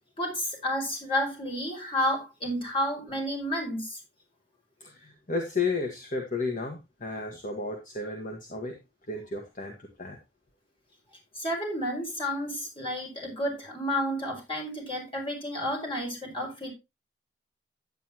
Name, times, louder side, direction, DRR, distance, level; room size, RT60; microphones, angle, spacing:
voice 1, 0.2-4.0 11.4-16.7, equal, 30° left, 0 dB, 5.5 m, -31 dB
voice 2, 4.8-8.8 9.1-10.2, left 3 dB, 50° left, 2 dB, 1.6 m, -33 dB
10.5 x 9.6 x 3.0 m, 0.23 s
head